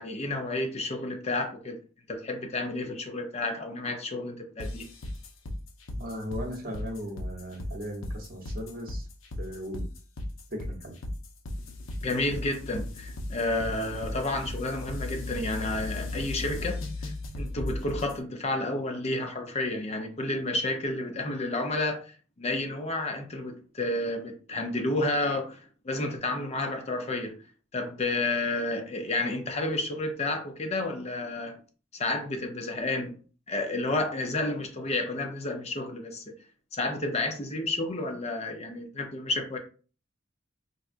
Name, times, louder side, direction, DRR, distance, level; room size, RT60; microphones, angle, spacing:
voice 1, 0.0-1.8 2.1-4.9 12.0-27.4 27.7-31.6 31.9-33.2 33.5-36.2 36.7-39.6, left 2 dB, 35° left, 0.6 m, -31 dB
sound 1, 4.6-18.2, left 1 dB, 75° left, 0.7 m, -36 dB
voice 2, 5.9-9.1 9.4-9.9 10.5-10.9, equal, 50° right, 0.9 m, -37 dB
4.0 x 2.3 x 2.5 m
head